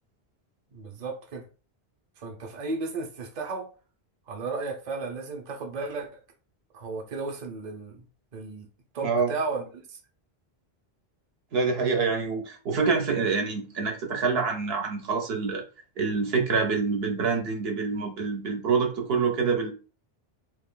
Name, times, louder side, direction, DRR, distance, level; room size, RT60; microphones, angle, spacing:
voice 1, 0.7-1.5 2.2-3.7 4.3-6.2 6.7-8.0 8.3-8.7 8.9-10.0, right 3 dB, 50° right, 0.7 m, -34 dB
voice 2, 9.0-9.3 11.5-15.6 16.0-19.7, right 5 dB, 75° right, 0.9 m, -26 dB
2.8 x 2.5 x 3.6 m
omnidirectional pair, 1.0 m